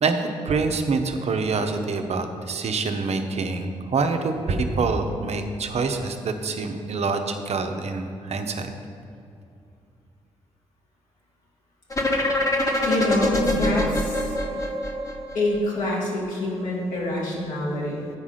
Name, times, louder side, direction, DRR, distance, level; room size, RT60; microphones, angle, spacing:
voice 1, 0.0-8.7, right 4 dB, 55° right, 6 dB, 0.8 m, -26 dB
sound 1, 11.9-15.8, left 1 dB, 25° left, 1.3 m, -24 dB
voice 2, 12.9-14.3 15.3-18.1, left 1 dB, 75° left, -4 dB, 2.1 m, -26 dB
8.2 x 4.8 x 5.7 m, 2.6 s
hypercardioid pair, 45°, 13 cm